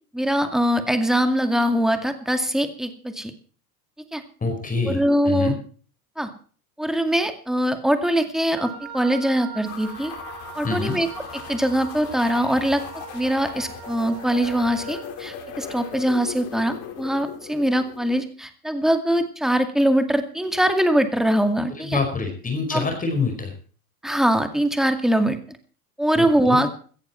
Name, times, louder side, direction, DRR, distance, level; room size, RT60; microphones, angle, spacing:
voice 1, 0.1-3.3 4.1-4.2 4.9-5.6 6.2-6.3 6.8-10.1 10.5-11.1 11.3-12.8 13.1-22.0 22.7-22.8 24.0-25.4 26.0-26.7, right 1 dB, ahead, 7 dB, 2.2 m, -22 dB
voice 2, 4.4-5.6 10.6-11.0 21.8-23.5 26.2-26.6, left 4 dB, 20° left, 5 dB, 5.1 m, -26 dB
Wind instrument woodwind instrument, 8.5-15.1, right 9 dB, 55° right, 5.0 m, -41 dB
sound 1, 9.7-18.2, left 8 dB, 55° left, 5.2 m, -38 dB
17.0 x 14.0 x 4.5 m, 0.42 s
supercardioid pair, 120°, 46 cm